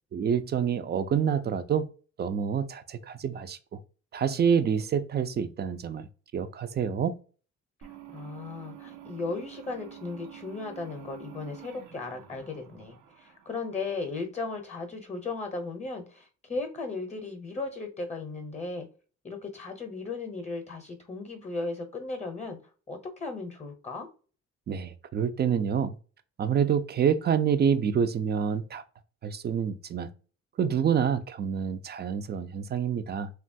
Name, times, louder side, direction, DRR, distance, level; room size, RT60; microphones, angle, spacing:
voice 1, 0.1-1.9 2.2-3.8 4.1-6.1 6.3-7.2 24.7-26.0 26.4-28.8 29.2-30.1 30.6-33.3, right 7 dB, 35° right, 0.4 m, -27 dB
sound 1, 7.8-14.2, right 10 dB, 80° right, 0.6 m, -48 dB
voice 2, 8.1-18.9 19.2-22.6 22.9-24.1, left 3 dB, 25° left, 0.7 m, -36 dB
3.0 x 2.3 x 2.6 m
cardioid pair, 90°, 30 cm